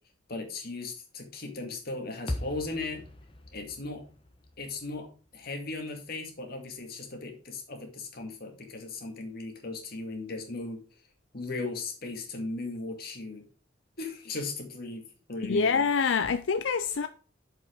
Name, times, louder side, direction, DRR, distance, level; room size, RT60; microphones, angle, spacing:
voice 1, 0.3-3.0 3.5-4.0 4.6-5.1 5.3-10.8 11.3-13.5 14.0-15.7, left 3 dB, 55° left, 2.1 m, -37 dB
sound 1, 2.3-6.6, left 1 dB, 30° left, 1.2 m, -41 dB
voice 2, 15.4-17.1, left 5 dB, 85° left, 0.5 m, -26 dB
7.3 x 5.4 x 5.1 m
head